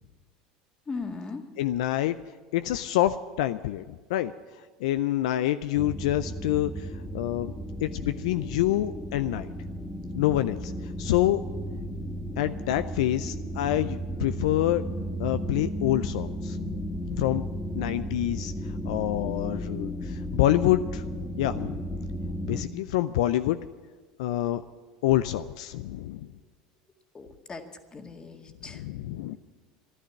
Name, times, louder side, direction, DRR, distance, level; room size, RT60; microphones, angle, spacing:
voice 1, 0.9-1.4 27.1-28.8, left 4 dB, 25° left, 5 dB, 1.9 m, -38 dB
voice 2, 1.6-2.2 2.5-7.5 7.8-9.5 10.1-10.7 11.0-11.4 12.4-14.8 15.2-16.8 17.1-17.4 17.7-18.5 18.9-21.0 21.4-21.8 22.4-23.6 24.2-24.6 25.0-26.3 28.6-29.4, left 14 dB, 75° left, 12 dB, 0.4 m, -27 dB
sound 1, 5.8-22.6, equal, 5° left, 2.0 m, -34 dB
13.5 x 12.0 x 8.4 m, 1.4 s
hypercardioid pair, 85°, 3 cm